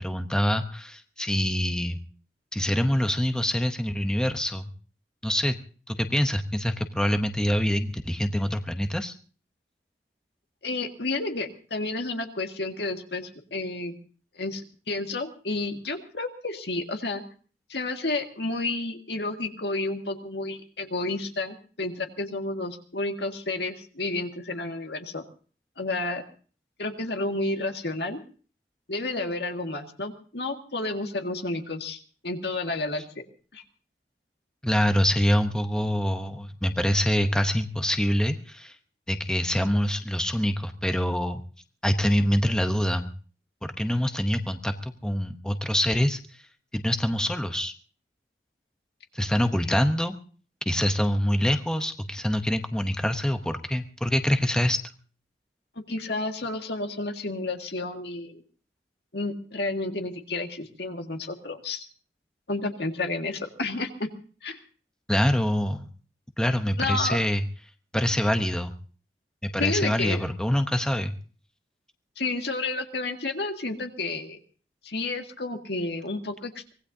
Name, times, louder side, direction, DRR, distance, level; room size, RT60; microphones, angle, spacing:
voice 1, 0.0-2.0 2.5-4.7 5.2-5.6 5.9-9.1 34.6-38.8 39.1-41.4 41.8-43.1 43.8-46.4 46.7-47.7 49.1-50.2 50.7-54.8 65.1-65.9 66.4-67.4 67.9-68.7 69.4-71.1, equal, 5° left, 6 dB, 0.8 m, -25 dB
voice 2, 10.6-13.9 14.3-17.2 17.7-25.2 25.8-26.2 26.8-28.2 28.9-33.0 33.5-33.6 55.8-58.4 59.1-61.9 62.5-64.1 64.4-64.6 66.8-67.2 69.5-70.2 72.2-74.4 74.8-76.7, left 2 dB, 70° left, 4 dB, 1.9 m, -31 dB
24.5 x 18.5 x 2.7 m, 0.40 s
head